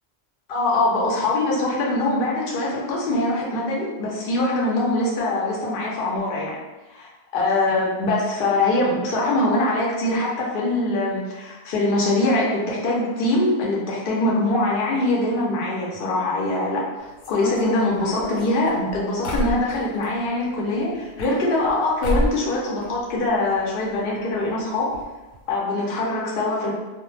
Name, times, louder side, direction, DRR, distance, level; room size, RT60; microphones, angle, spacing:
voice 1, 0.5-6.6 6.9-7.0 7.3-24.9 25.5-26.7, left 2 dB, 60° left, -4 dB, 0.8 m, -23 dB
sound 1, 17.2-20.1 21.0-21.8 22.0-22.5 22.8-23.6 23.8-23.9 24.1-24.2 24.9-25.0 25.3-25.5, left 1 dB, 85° left, 1.0 m, -29 dB
2.1 x 2.1 x 3.1 m, 1.1 s
omnidirectional pair, 1.2 m